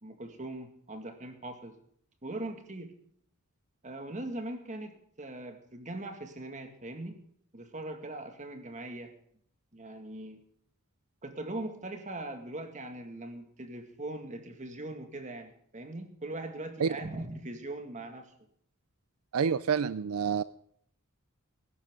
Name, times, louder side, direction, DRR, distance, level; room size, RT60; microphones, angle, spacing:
voice 1, 0.0-1.7 2.2-2.9 3.8-7.2 7.5-9.1 9.7-10.4 11.2-18.3, right 2 dB, 35° right, 6 dB, 2.1 m, -40 dB
voice 2, 19.3-20.4, right 6 dB, 80° right, 16 dB, 0.5 m, -28 dB
19.5 x 11.0 x 3.8 m, 0.64 s
head